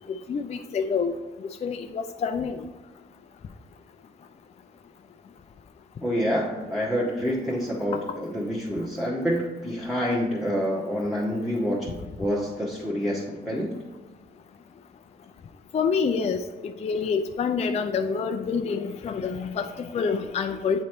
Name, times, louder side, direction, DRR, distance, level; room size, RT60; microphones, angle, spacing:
voice 1, 0.1-2.7 7.9-8.0 15.7-20.8, left 5 dB, 35° left, 6 dB, 0.4 m, -27 dB
voice 2, 6.0-13.7, equal, ahead, -6 dB, 1.1 m, -27 dB
8.3 x 3.2 x 4.3 m, 1.2 s
cardioid pair, 90°, 20 cm